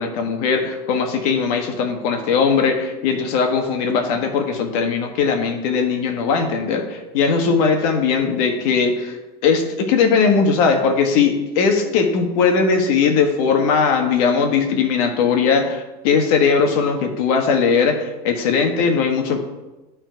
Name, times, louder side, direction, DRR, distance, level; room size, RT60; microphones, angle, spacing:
voice 1, 0.0-9.2 9.4-19.4, left 5 dB, 75° left, 5 dB, 1.5 m, -19 dB
12.0 x 4.3 x 4.6 m, 1.1 s
cardioid pair, 145°, 19 cm